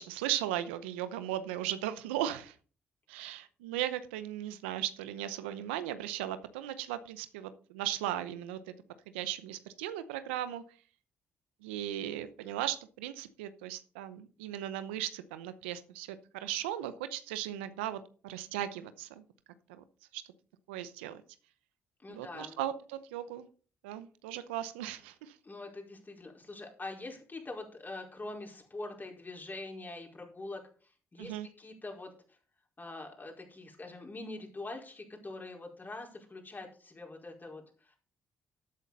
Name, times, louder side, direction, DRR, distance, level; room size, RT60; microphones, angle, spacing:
voice 1, 0.0-2.5 3.1-8.6 9.1-10.6 11.6-19.2 19.7-19.8 20.1-20.2 20.7-21.2 22.1-23.5 23.8-25.3 31.2-31.5, right 12 dB, 90° right, 13 dB, 0.8 m, -37 dB
voice 2, 22.0-22.6 25.4-32.4 32.8-38.0, left 2 dB, 30° left, 1 dB, 4.7 m, -44 dB
12.5 x 8.4 x 4.1 m, 0.39 s
hypercardioid pair, 45°, 6 cm